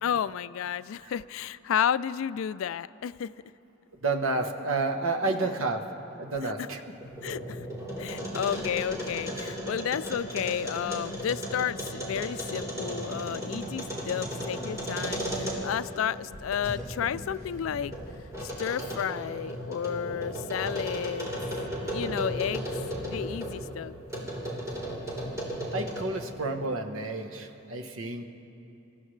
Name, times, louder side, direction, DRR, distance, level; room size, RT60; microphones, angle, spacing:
voice 1, 0.0-3.3 6.4-6.7 7.2-7.7 8.0-17.9 18.4-21.3 21.8-22.7 23.1-24.0, left 8 dB, 80° left, 17 dB, 0.3 m, -32 dB
voice 2, 4.0-5.8 6.2-6.8 25.7-28.2, right 3 dB, 85° right, 6 dB, 1.1 m, -30 dB
sound 1, 6.9-15.9 16.3-23.6 24.1-26.2, equal, 15° right, 3.7 m, -35 dB
28.5 x 15.0 x 3.2 m, 2.9 s
head